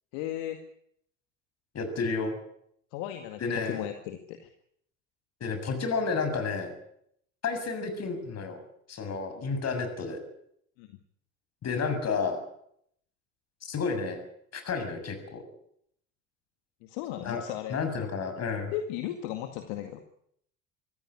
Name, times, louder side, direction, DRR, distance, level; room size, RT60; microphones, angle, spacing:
voice 1, 0.1-0.6 2.9-4.5 9.3-9.4 10.8-11.0 16.8-17.8 18.7-20.0, left 12 dB, 65° left, 7 dB, 2.2 m, -36 dB
voice 2, 1.7-2.3 3.4-3.9 5.4-6.7 7.4-8.6 8.9-10.2 11.6-12.4 13.6-14.2 14.5-15.4 17.2-17.4 17.7-18.7, left 4 dB, 40° left, 7 dB, 7.0 m, -31 dB
24.5 x 15.5 x 9.9 m, 0.72 s
figure-of-eight pair, 65°, 39 cm